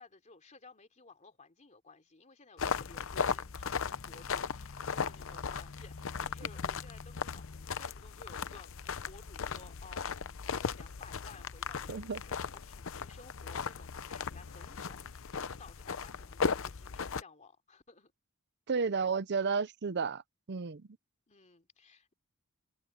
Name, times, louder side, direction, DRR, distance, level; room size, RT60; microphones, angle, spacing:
voice 1, 0.0-18.1 21.3-22.1, left 3 dB, 35° left, 3.3 m, -56 dB
sound 1, 2.6-17.2, left 6 dB, 65° left, 0.7 m, -37 dB
voice 2, 11.9-12.2 18.7-20.2 20.5-20.9, right 5 dB, 55° right, 0.6 m, -32 dB
head